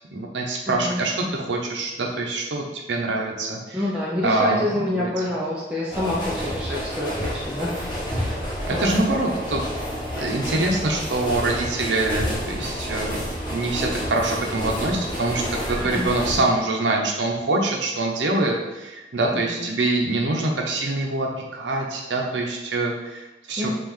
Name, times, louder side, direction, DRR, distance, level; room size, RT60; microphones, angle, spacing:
voice 1, 0.1-3.8 4.2-4.7 4.9-5.1 8.7-9.6 10.2-23.7, right 2 dB, 85° right, 0 dB, 0.7 m, -25 dB
voice 2, 0.7-1.0 3.7-7.9 8.2-8.4 8.7-9.0 16.0-16.1 16.4-16.5 19.3-19.6 23.6-23.7, left 1 dB, 5° right, -7 dB, 0.5 m, -27 dB
sound 1, 5.9-16.4, equal, 25° left, 0.9 m, -29 dB
5.5 x 2.4 x 3.1 m, 1.1 s
head